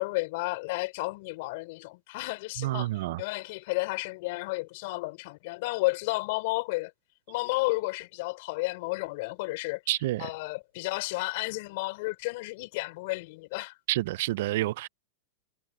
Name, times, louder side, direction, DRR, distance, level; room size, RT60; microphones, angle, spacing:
voice 1, 0.0-2.9 3.2-6.9 7.3-9.8 10.2-13.7, left 24 dB, 60° left, 5.0 m, -32 dB
voice 2, 2.6-3.2 9.9-10.3 13.9-14.9, right 16 dB, 65° right, 0.6 m, -28 dB
hypercardioid pair, 110°, 0 cm